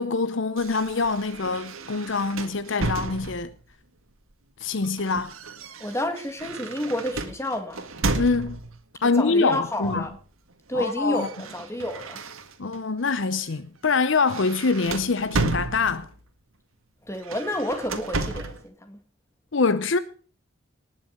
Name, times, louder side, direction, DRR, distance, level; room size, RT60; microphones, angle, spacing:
voice 1, 0.0-3.5 4.6-5.3 8.1-8.6 9.0-10.1 10.7-11.3 12.6-16.1 19.5-20.0, left 4 dB, 60° left, 0.7 m, -24 dB
sound 1, 0.6-3.7 4.6-8.8 9.8-10.2 10.5-12.8 13.3-13.5 13.8-16.2 17.1-18.7, right 3 dB, 75° right, 1.8 m, -33 dB
voice 2, 5.8-7.8 9.0-10.2 10.7-12.2 17.0-19.0, left 1 dB, 15° left, 2.1 m, -30 dB
19.0 x 6.8 x 6.7 m
head